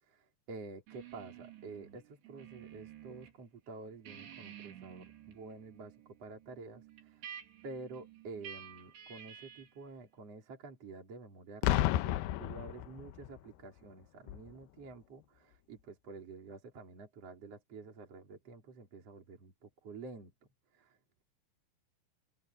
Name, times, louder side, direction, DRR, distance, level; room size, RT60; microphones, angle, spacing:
voice 1, 0.1-7.3 7.6-20.3 20.7-21.2, right 3 dB, 35° right, 4.6 m, -49 dB
sound 1, 0.9-3.3 3.7-9.8, right 10 dB, 85° right, 5.4 m, -52 dB
Boom, 11.6-13.4 14.3-14.5, left 14 dB, 75° left, 2.6 m, -31 dB
omnidirectional pair, 4.9 m